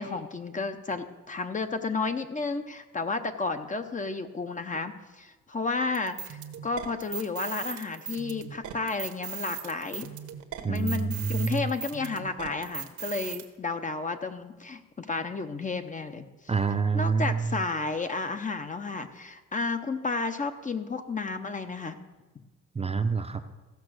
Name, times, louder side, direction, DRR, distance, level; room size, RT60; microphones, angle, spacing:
voice 1, 0.0-10.1 10.7-16.3 16.9-22.0, left 3 dB, 25° left, 8 dB, 0.8 m, -32 dB
sound 1, 5.9-13.4, right 7 dB, 75° right, 1.2 m, -39 dB
voice 2, 10.6-11.7 16.5-17.4 22.7-23.4, right 5 dB, 20° right, 7 dB, 0.7 m, -27 dB
15.5 x 5.9 x 6.4 m, 1.2 s
cardioid pair, 90°, 30 cm